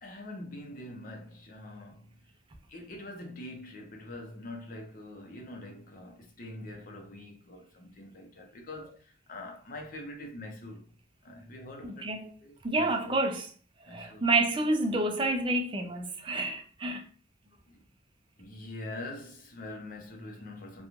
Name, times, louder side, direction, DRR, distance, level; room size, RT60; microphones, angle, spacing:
voice 1, 0.0-2.3 2.7-10.9 11.2-12.1 12.4-13.2 13.9-14.3 17.7-17.8 18.4-20.9, left 1 dB, 45° left, 0.6 m, -44 dB
voice 2, 11.8-12.3 12.6-13.5 13.9-17.1, right 2 dB, 25° right, 0.4 m, -29 dB
3.0 x 2.2 x 2.4 m
head